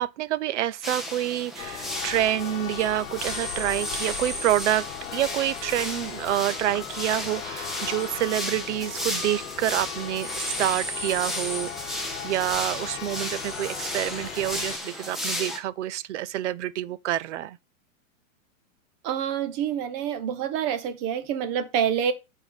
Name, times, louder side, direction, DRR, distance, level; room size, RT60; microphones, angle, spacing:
voice 1, 0.0-17.6, right 13 dB, 55° right, 0.7 m, -27 dB
sound 1, 0.8-15.6, left 1 dB, ahead, 0.8 m, -34 dB
Church bell, 1.6-14.8, left 11 dB, 80° left, 1.0 m, -38 dB
voice 2, 19.0-22.1, right 8 dB, 30° right, 1.0 m, -27 dB
8.9 x 4.6 x 5.3 m
hypercardioid pair, 155°, 41 cm